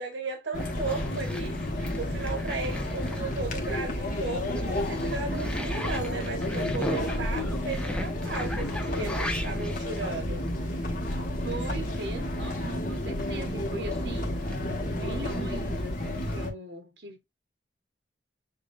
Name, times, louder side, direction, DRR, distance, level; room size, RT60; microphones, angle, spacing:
voice 1, 0.0-1.6 1.9-10.5, right 3 dB, 90° right, 1.0 m, -35 dB
sound 1, 0.5-16.5, left 1 dB, 50° left, 1.4 m, -31 dB
sound 2, 0.6-13.5 13.9-16.3, left 1 dB, 5° left, 0.8 m, -41 dB
sound 3, 2.1-15.6, equal, 25° right, 1.4 m, -46 dB
voice 2, 11.4-14.4 14.9-17.2, right 2 dB, 65° right, 1.4 m, -39 dB
7.1 x 2.7 x 2.6 m
head